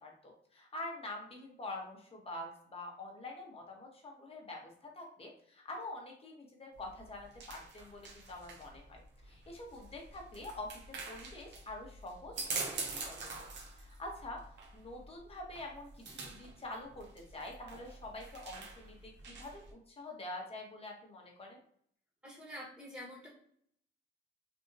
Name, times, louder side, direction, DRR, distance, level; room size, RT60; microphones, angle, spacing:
voice 1, 0.0-13.5 13.8-21.6, left 2 dB, 30° left, 0 dB, 1.2 m, -46 dB
Walking on glass in open hall, 6.7-19.7, right 3 dB, 65° right, 0.9 m, -45 dB
voice 2, 22.2-23.3, equal, 5° right, -5 dB, 1.5 m, -47 dB
3.5 x 2.6 x 2.7 m, 0.65 s
cardioid pair, 90°, 20 cm